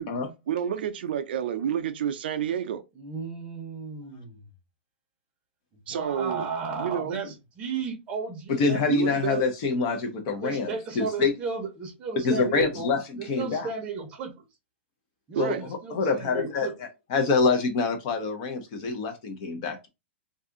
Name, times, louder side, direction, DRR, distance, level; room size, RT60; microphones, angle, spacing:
voice 1, 0.5-2.8 5.9-6.5 6.8-7.2 8.9-9.5 15.4-15.6, right 9 dB, 55° right, 0.4 m, -29 dB
voice 2, 2.9-4.5 5.9-9.2 10.4-14.5 15.3-16.7, right 5 dB, 15° right, 0.8 m, -34 dB
voice 3, 8.6-11.3 12.2-13.0 13.3-13.7 15.4-15.5 15.9-16.7 17.1-19.9, left 4 dB, 35° left, 0.6 m, -26 dB
2.6 x 2.4 x 3.6 m
hypercardioid pair, 170°, 6 cm